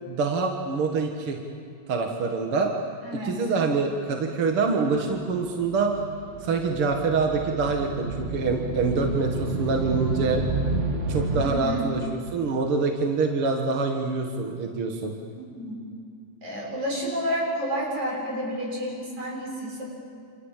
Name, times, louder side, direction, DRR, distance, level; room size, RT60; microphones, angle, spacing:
voice 1, 0.1-1.4 1.9-2.7 3.2-6.0 6.4-10.4 11.1-15.2, right 4 dB, 50° right, 2 dB, 2.4 m, -25 dB
voice 2, 3.0-3.4 11.4-11.9 15.4-15.7 16.4-19.9, equal, 65° right, -2 dB, 8.4 m, -30 dB
sound 1, 5.0-11.5, right 3 dB, 30° right, 1.7 m, -30 dB
28.5 x 27.5 x 7.5 m, 2.4 s
omnidirectional pair, 3.6 m